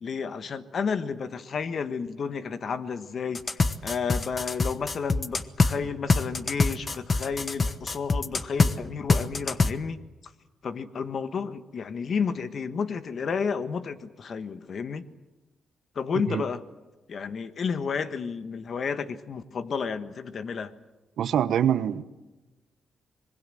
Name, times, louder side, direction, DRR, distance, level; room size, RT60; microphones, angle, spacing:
voice 1, 0.0-10.0 10.6-15.1 15.9-16.6 17.1-20.7, left 6 dB, 55° left, 11 dB, 1.4 m, -31 dB
sound 1, 3.4-5.7 6.1-8.7 9.1-9.7, left 3 dB, 30° left, 1.1 m, -24 dB
voice 2, 21.2-22.0, right 9 dB, 80° right, 14 dB, 1.0 m, -24 dB
25.5 x 21.5 x 7.8 m, 1.1 s
cardioid pair, 90°, 0 cm